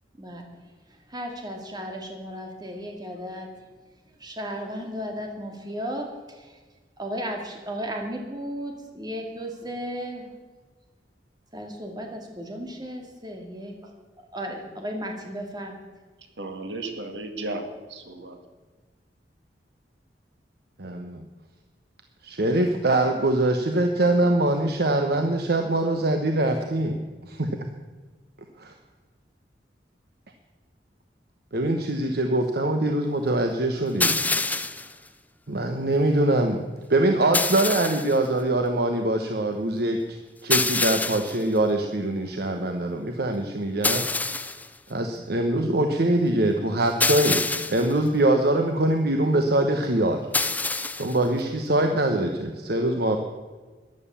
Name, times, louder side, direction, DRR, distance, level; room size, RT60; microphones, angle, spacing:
voice 1, 1.1-3.5 4.2-6.6 7.0-10.3 11.5-13.9 14.3-15.8, equal, 25° right, 2 dB, 2.4 m, -35 dB
voice 2, 16.4-18.4, right 2 dB, 85° right, 5 dB, 2.0 m, -34 dB
voice 3, 20.8-21.2 22.2-27.7 28.6-28.7 31.5-34.2 34.5-34.7 35.5-36.6 36.9-40.2 40.4-44.1 44.4-44.5 44.9-50.2 51.0-53.2, right 1 dB, 65° right, 5 dB, 1.1 m, -23 dB
sound 1, 34.0-34.9 37.3-38.2 40.5-41.4 43.8-44.7 47.0-47.9 50.3-51.2, left 3 dB, 10° left, 0.5 m, -26 dB
14.5 x 11.0 x 7.0 m, 1.3 s
head